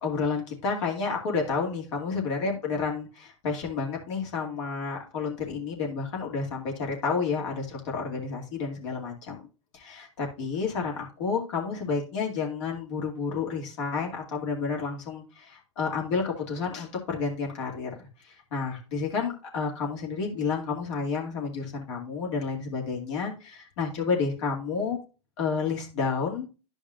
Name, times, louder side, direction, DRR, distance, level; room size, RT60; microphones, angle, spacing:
voice 1, 0.0-9.5 9.7-25.0 25.4-26.5, left 5 dB, 65° left, 0 dB, 2.4 m, -30 dB
11.5 x 5.3 x 2.5 m, 0.32 s
hypercardioid pair, 105°, 16 cm